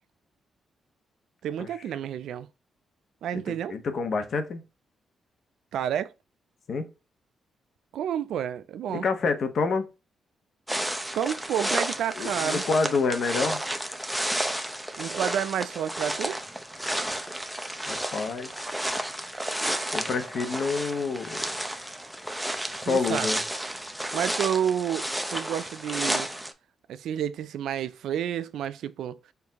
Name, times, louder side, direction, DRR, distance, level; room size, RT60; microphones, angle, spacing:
voice 1, 1.4-2.5 3.2-3.7 5.7-6.1 7.9-9.0 11.1-12.6 15.0-16.4 22.9-23.3 24.1-26.3 26.9-29.2, right 9 dB, 90° right, 0.3 m, -30 dB
voice 2, 3.3-4.6 6.7-6.9 8.9-9.9 12.1-13.6 17.9-18.5 19.9-21.4 22.8-23.4, left 4 dB, 60° left, 0.9 m, -28 dB
sound 1, 10.7-26.5, right 1 dB, 5° right, 0.5 m, -32 dB
4.6 x 2.6 x 3.4 m
cardioid pair, 105°, 0 cm